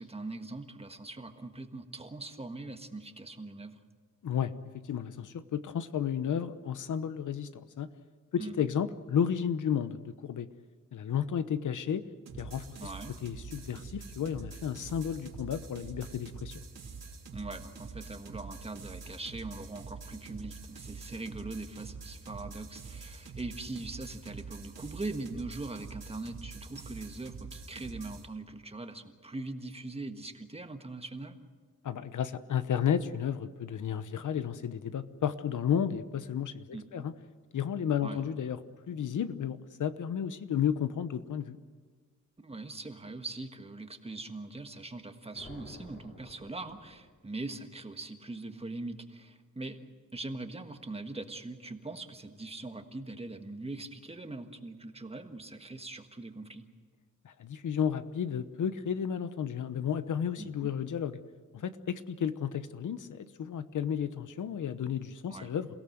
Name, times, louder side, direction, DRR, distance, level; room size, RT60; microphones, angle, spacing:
voice 1, 0.0-3.8 8.4-8.6 12.8-13.2 17.3-31.4 36.7-37.1 38.0-38.2 42.4-56.6 60.4-60.7 65.3-65.5, right 2 dB, 20° right, 7 dB, 1.5 m, -41 dB
voice 2, 4.8-7.5 7.8-7.9 8.3-10.5 10.9-12.0 12.4-12.9 13.2-16.6 31.8-37.1 37.5-38.6 38.9-41.6 57.2-61.2 61.5-65.7, left 8 dB, 70° left, 12 dB, 1.0 m, -32 dB
sound 1, 12.3-28.3, right 4 dB, 55° right, 3.0 m, -46 dB
sound 2, 45.3-47.3, left 1 dB, 35° left, 3.8 m, -52 dB
28.5 x 17.0 x 7.9 m, 1.5 s
wide cardioid pair, 130°, 32 cm